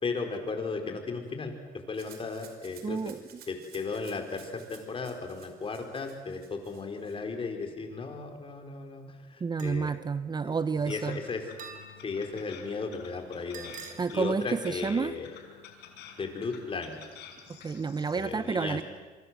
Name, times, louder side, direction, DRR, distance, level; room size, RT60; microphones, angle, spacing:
voice 1, 0.0-3.1 3.5-10.0 10.4-10.5 10.8-11.5 12.0-15.3 16.2-17.0 18.1-18.8, left 4 dB, 30° left, 5 dB, 4.8 m, -35 dB
Rattle (instrument), 1.9-7.2, right 8 dB, 70° right, 5.0 m, -55 dB
voice 2, 2.8-3.2 9.4-11.2 14.0-15.1 17.6-18.8, right 5 dB, 25° right, 14 dB, 0.7 m, -30 dB
sound 1, 9.6-9.9 11.6-12.2 13.5-14.0, right 6 dB, 50° right, 5.4 m, -45 dB
sound 2, 10.7-18.2, left 8 dB, 85° left, 5.2 m, -50 dB
27.0 x 24.5 x 7.8 m, 1.3 s
cardioid pair, 110°, 17 cm